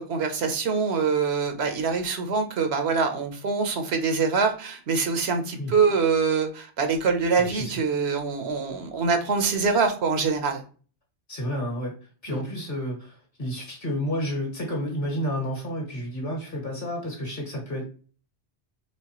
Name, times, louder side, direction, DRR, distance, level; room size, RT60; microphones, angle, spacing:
voice 1, 0.0-10.6 12.3-12.4, right 5 dB, 70° right, 6 dB, 1.0 m, -24 dB
voice 2, 7.4-7.7 11.3-11.9 12.2-17.8, equal, 50° left, -1 dB, 1.9 m, -30 dB
4.6 x 3.5 x 2.9 m, 0.39 s
omnidirectional pair, 1.2 m